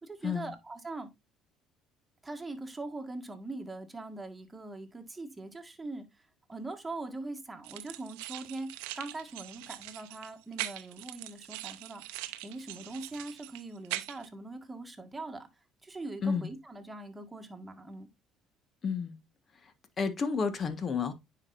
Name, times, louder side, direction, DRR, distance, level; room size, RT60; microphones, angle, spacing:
voice 1, 0.0-1.1 2.2-6.1 6.5-15.5 15.8-18.1, right 2 dB, 15° right, 1.7 m, -42 dB
sound 1, 7.6-14.3, right 16 dB, 85° right, 0.6 m, -42 dB
voice 2, 18.8-19.2 20.0-21.1, left 5 dB, 40° left, 1.4 m, -30 dB
9.6 x 5.0 x 2.6 m
supercardioid pair, 75°, 0 cm